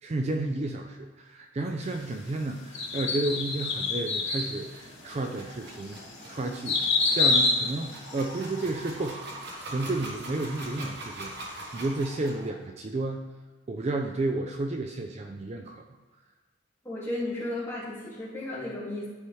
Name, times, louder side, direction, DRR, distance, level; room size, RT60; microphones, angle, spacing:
voice 1, 0.0-6.0 6.3-13.3 13.7-15.8, right 2 dB, 35° right, 4 dB, 0.4 m, -32 dB
sound 1, 2.7-4.5 5.1-5.2 5.8-8.6 8.9-9.0, left 3 dB, 80° left, 2.2 m, -26 dB
sound 2, 4.6-12.5, right 1 dB, 60° right, 1.2 m, -43 dB
voice 2, 16.8-19.1, left 1 dB, 10° left, -8 dB, 2.0 m, -34 dB
10.0 x 4.8 x 3.1 m, 1.3 s
head